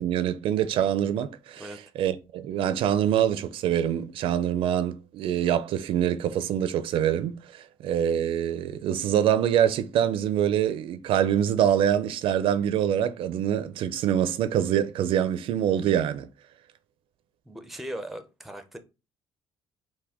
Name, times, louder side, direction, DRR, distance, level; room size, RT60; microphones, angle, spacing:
voice 1, 0.0-16.3, right 10 dB, 65° right, 0.4 m, -25 dB
voice 2, 17.5-18.8, right 1 dB, ahead, 0.5 m, -38 dB
5.9 x 2.2 x 3.5 m
cardioid pair, 155°, 10 cm